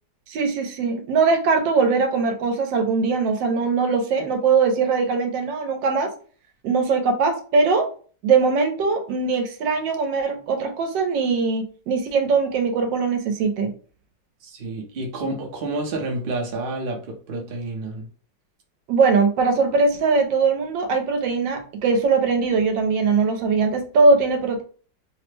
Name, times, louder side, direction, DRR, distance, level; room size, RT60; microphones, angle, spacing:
voice 1, 0.3-6.1 6.6-7.9 8.2-13.7 18.9-24.6, right 4 dB, 85° right, 5 dB, 1.3 m, -21 dB
voice 2, 14.4-18.1, right 2 dB, 50° right, 0 dB, 0.6 m, -29 dB
3.2 x 2.0 x 3.2 m, 0.41 s
omnidirectional pair, 2.0 m